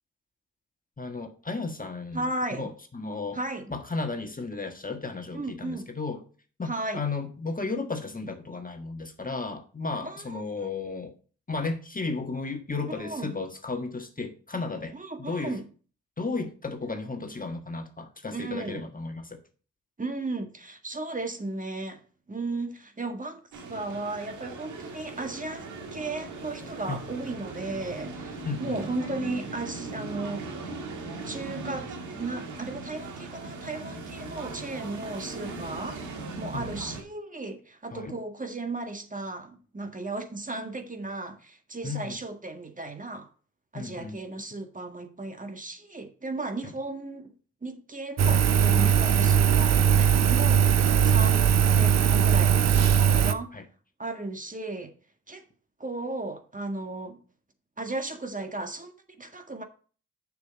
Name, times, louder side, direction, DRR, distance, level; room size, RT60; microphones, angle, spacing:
voice 1, 1.0-2.3 2.5-3.4 3.7-6.2 6.6-11.1 11.5-15.6 16.2-19.4 26.9-27.0 28.4-28.8 36.5-36.7 37.9-38.1 41.8-42.2 43.7-44.2 46.6-46.7 51.3-51.4 53.5-53.6, left 3 dB, 30° left, 1.5 m, -34 dB
voice 2, 2.1-2.7 3.3-3.7 5.3-5.9 6.6-7.0 10.0-10.7 12.9-13.4 14.9-15.7 18.3-18.9 20.0-22.0 22.3-30.4 31.2-36.0 36.4-43.3 43.7-47.3 47.6-52.7 53.1-53.5 54.0-54.9 55.3-55.4 55.8-57.2 57.8-59.6, right 2 dB, 25° right, 1.7 m, -35 dB
sound 1, 23.5-37.0, right 3 dB, 90° right, 1.7 m, -39 dB
Engine, 48.2-53.3, right 8 dB, 60° right, 0.7 m, -20 dB
6.7 x 6.5 x 4.0 m
supercardioid pair, 50°, 29 cm